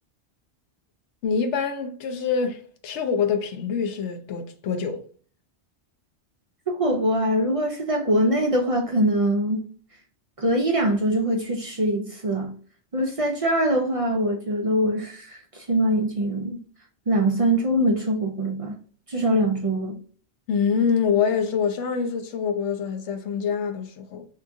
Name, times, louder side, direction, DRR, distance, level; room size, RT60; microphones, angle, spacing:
voice 1, 1.2-5.0 20.5-24.3, left 6 dB, 85° left, 1.0 m, -25 dB
voice 2, 6.7-9.6 10.4-12.5 12.9-16.6 17.1-18.7 19.1-20.0, right 1 dB, 45° right, 0.5 m, -23 dB
3.5 x 2.9 x 2.6 m
omnidirectional pair, 1.1 m